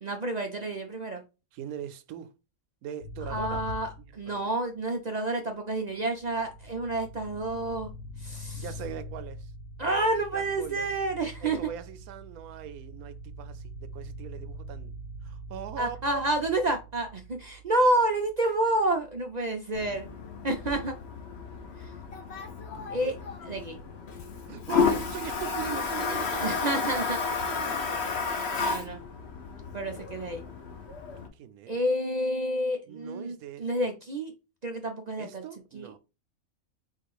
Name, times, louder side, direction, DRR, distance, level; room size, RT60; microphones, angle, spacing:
voice 1, 0.0-1.2 3.3-7.9 8.2-8.6 9.8-11.6 15.8-20.1 20.4-20.9 21.8-21.9 22.9-23.1 23.4-23.8 26.4-27.2 28.4-29.0 29.7-30.4 31.7-34.3 34.6-35.4 35.7-35.9, right 1 dB, 60° right, 0.4 m, -29 dB
voice 2, 1.5-2.3 2.8-3.6 4.0-4.4 8.6-9.5 10.3-10.9 11.4-14.9 15.2-16.2 19.9-20.0 22.7-23.3 24.5-27.1 27.5-28.1 31.2-31.8 32.9-33.7 35.2-36.0, right 10 dB, 85° right, 1.1 m, -41 dB
sound 1, 3.0-4.8 5.8-22.7, equal, 85° left, 1.2 m, -44 dB
Toilet flush, 19.7-31.3, left 5 dB, 55° left, 1.1 m, -32 dB
4.5 x 2.4 x 4.6 m
omnidirectional pair, 1.5 m